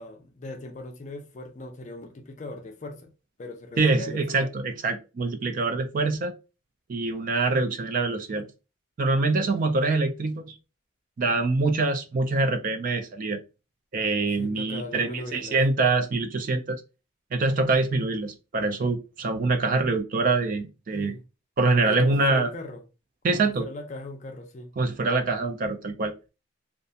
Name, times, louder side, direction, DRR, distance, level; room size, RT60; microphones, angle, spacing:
voice 1, 0.0-3.1 3.4-4.5 14.4-15.6 20.9-21.2 21.9-22.8 23.2-24.7, left 2 dB, 35° left, 0.4 m, -39 dB
voice 2, 3.8-6.3 6.9-8.5 9.0-10.5 11.2-13.4 13.9-16.8 17.3-21.1 21.6-22.5 23.2-23.7 24.8-26.1, right 3 dB, 40° right, 0.3 m, -25 dB
2.4 x 2.1 x 2.7 m
head